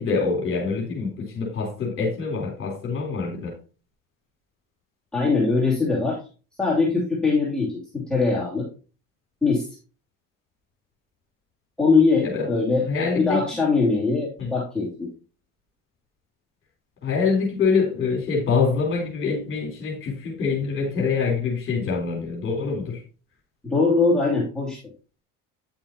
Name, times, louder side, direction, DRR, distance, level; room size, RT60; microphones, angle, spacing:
voice 1, 0.0-3.5 12.2-12.5 12.9-13.4 14.4-14.5 17.0-23.0, left 5 dB, 40° left, -2 dB, 3.7 m, -25 dB
voice 2, 5.1-6.2 6.6-8.7 9.4-9.7 11.8-12.8 13.1-15.1 23.6-24.8, left 4 dB, ahead, -7 dB, 2.8 m, -21 dB
10.0 x 7.3 x 2.9 m, 0.35 s
supercardioid pair, 110°, 33 cm